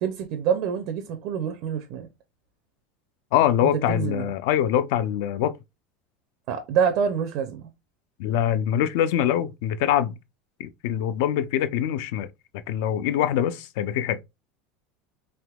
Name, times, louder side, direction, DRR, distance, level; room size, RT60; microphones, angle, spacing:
voice 1, 0.0-2.1 3.6-4.3 6.5-7.7, right 7 dB, 50° right, 0.4 m, -26 dB
voice 2, 3.3-5.6 8.2-10.1 10.6-12.3 12.7-14.2, left 10 dB, 65° left, 0.3 m, -24 dB
3.4 x 2.8 x 2.2 m
supercardioid pair, 160°, 0 cm